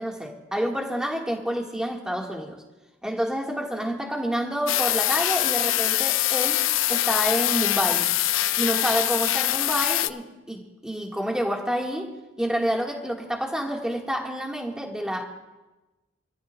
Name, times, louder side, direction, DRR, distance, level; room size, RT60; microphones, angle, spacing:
voice 1, 0.0-2.6 3.0-8.1 8.6-15.3, equal, 5° right, 0 dB, 1.7 m, -28 dB
sound 1, 4.7-10.1, left 14 dB, 85° left, 0.5 m, -23 dB
26.0 x 14.0 x 2.4 m, 1.1 s
head